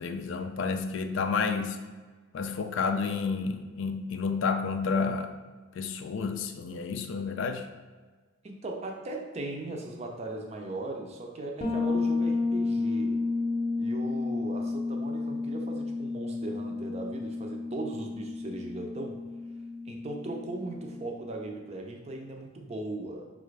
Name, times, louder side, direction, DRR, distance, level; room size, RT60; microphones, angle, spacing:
voice 1, 0.0-1.8 2.3-5.3 5.8-7.7, left 5 dB, 65° left, 7 dB, 0.3 m, -30 dB
voice 2, 8.4-13.2 13.8-19.2 19.9-23.3, right 2 dB, 30° right, 2 dB, 0.5 m, -38 dB
Bass guitar, 11.6-21.3, left 3 dB, 30° left, 0.7 m, -32 dB
5.3 x 2.4 x 3.2 m, 1.3 s
head